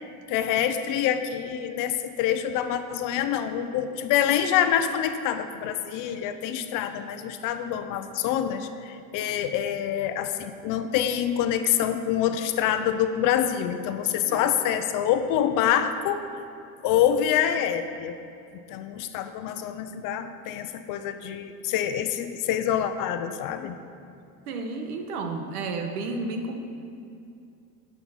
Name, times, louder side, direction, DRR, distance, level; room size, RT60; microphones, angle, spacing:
voice 1, 0.3-16.3 16.8-18.2 18.7-23.8, left 10 dB, 45° left, 9 dB, 0.7 m, -26 dB
voice 2, 24.5-26.6, right 3 dB, 85° right, 5 dB, 1.4 m, -32 dB
10.0 x 5.7 x 7.2 m, 2.6 s
supercardioid pair, 130°, 44 cm